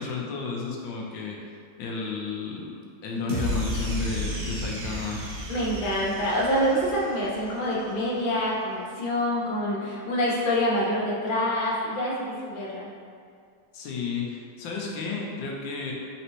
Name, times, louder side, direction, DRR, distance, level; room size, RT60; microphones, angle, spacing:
voice 1, 0.0-1.4 1.8-2.7 3.0-5.2 13.7-15.9, left 4 dB, 85° left, -2 dB, 1.4 m, -32 dB
sound 1, 3.3-7.6, equal, 65° right, 1.2 m, -32 dB
voice 2, 5.5-12.9, equal, 55° left, -5 dB, 0.5 m, -26 dB
4.1 x 3.6 x 2.9 m, 2.2 s
omnidirectional pair, 2.0 m